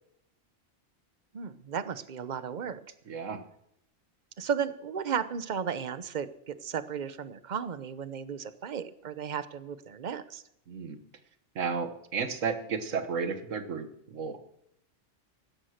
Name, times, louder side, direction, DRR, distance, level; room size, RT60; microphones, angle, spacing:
voice 1, 1.3-2.8 4.4-10.4, right 7 dB, 40° right, 14 dB, 0.9 m, -34 dB
voice 2, 3.1-3.4 10.7-11.0 11.5-14.4, right 5 dB, 85° right, 10 dB, 1.6 m, -33 dB
16.0 x 12.0 x 6.5 m, 0.77 s
omnidirectional pair, 1.3 m